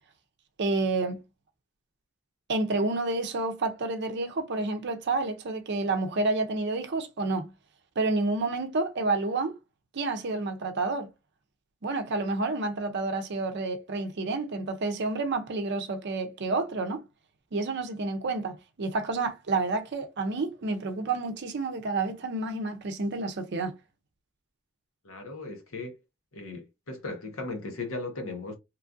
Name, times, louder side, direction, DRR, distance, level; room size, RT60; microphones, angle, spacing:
voice 1, 0.6-1.2 2.5-7.5 8.0-9.5 9.9-11.1 11.8-17.0 17.5-23.7, right 3 dB, 55° right, 0.5 m, -29 dB
voice 2, 25.0-26.0 26.3-28.5, left 3 dB, 75° left, 1.0 m, -37 dB
3.0 x 2.5 x 2.5 m
head